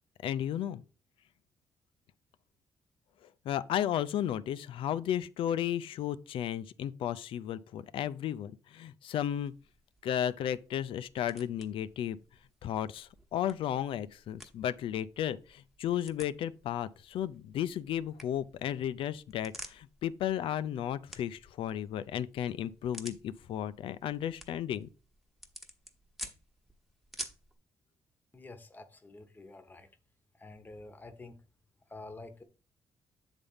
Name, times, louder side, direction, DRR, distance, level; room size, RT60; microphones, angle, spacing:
voice 1, 0.2-0.8 3.4-9.5 10.0-12.2 12.6-24.9, left 10 dB, 80° left, 0.5 m, -34 dB
sound 1, 9.4-27.5, equal, ahead, 1.2 m, -52 dB
voice 2, 28.3-29.9 30.3-31.4 31.9-32.4, left 2 dB, 20° left, 1.0 m, -48 dB
8.1 x 3.5 x 5.5 m
cardioid pair, 110°, 9 cm